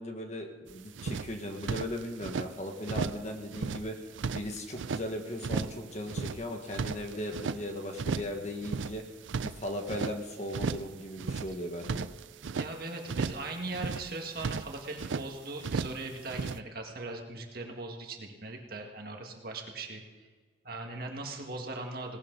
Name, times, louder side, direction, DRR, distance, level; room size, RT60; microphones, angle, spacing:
voice 1, 0.0-4.0 4.3-9.0 9.4-12.1, left 1 dB, 40° left, 3 dB, 1.7 m, -37 dB
sound 1, 0.7-0.8 1.0-2.5 2.8-3.3 3.5-5.0 5.4-5.8 6.1-7.6 8.0-8.4 8.6-10.2 10.5-10.9 11.2-12.7 13.1-13.5 13.7-15.3 15.6-16.0 16.3-16.6, right 5 dB, 90° right, 0.5 m, -35 dB
voice 2, 12.5-20.0 20.6-22.2, right 2 dB, 50° right, 2 dB, 1.9 m, -39 dB
18.5 x 17.0 x 4.0 m, 1.5 s
head